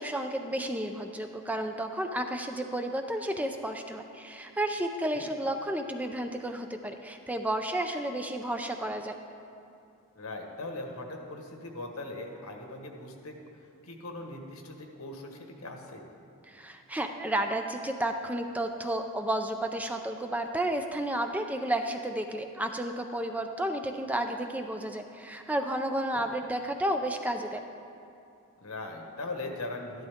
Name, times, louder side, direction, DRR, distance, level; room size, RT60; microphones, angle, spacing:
voice 1, 0.0-9.2 16.5-27.6, right 1 dB, 5° right, 5 dB, 0.4 m, -32 dB
voice 2, 10.1-13.4 13.8-16.0 26.1-26.3 28.6-30.1, left 2 dB, 85° left, 2 dB, 1.4 m, -40 dB
13.0 x 11.5 x 3.6 m, 2.7 s
head